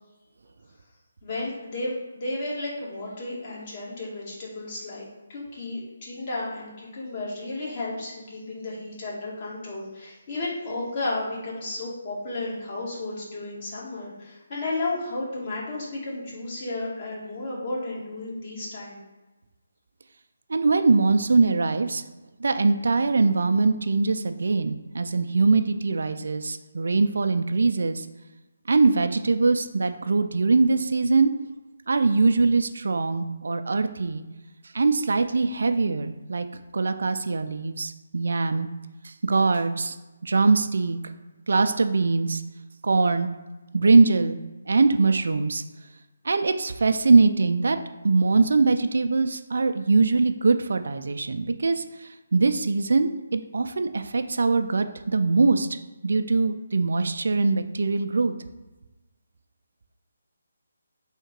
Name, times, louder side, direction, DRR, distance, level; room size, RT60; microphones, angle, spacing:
voice 1, 1.2-19.0, left 2 dB, 40° left, -5 dB, 1.5 m, -33 dB
voice 2, 20.5-22.0 22.4-28.1 28.7-31.3 31.9-34.2 34.7-36.5 36.7-38.7 39.0-40.0 40.2-41.0 41.5-42.4 42.8-43.3 43.7-44.4 44.7-45.6 46.3-47.8 48.0-51.8 52.3-55.7 56.0-58.3, right 3 dB, 70° right, 8 dB, 0.3 m, -22 dB
3.6 x 2.8 x 4.5 m, 1.1 s
figure-of-eight pair, 150°, 0 cm